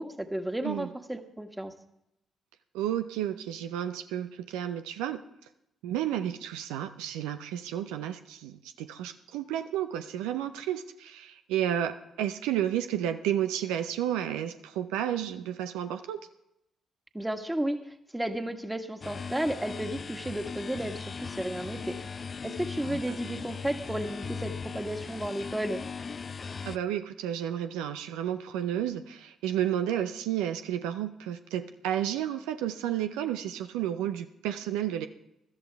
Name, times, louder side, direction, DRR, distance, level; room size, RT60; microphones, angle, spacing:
voice 1, 0.0-1.7 17.1-22.0 22.4-25.8, right 1 dB, 10° right, 7 dB, 1.8 m, -33 dB
voice 2, 2.7-5.2 5.8-16.3 22.8-23.2 26.4-35.1, right 11 dB, 75° right, 8 dB, 0.6 m, -32 dB
sound 1, 19.0-26.8, left 5 dB, 40° left, 0.5 m, -38 dB
21.0 x 13.0 x 3.5 m, 0.81 s
hypercardioid pair, 40°, 0 cm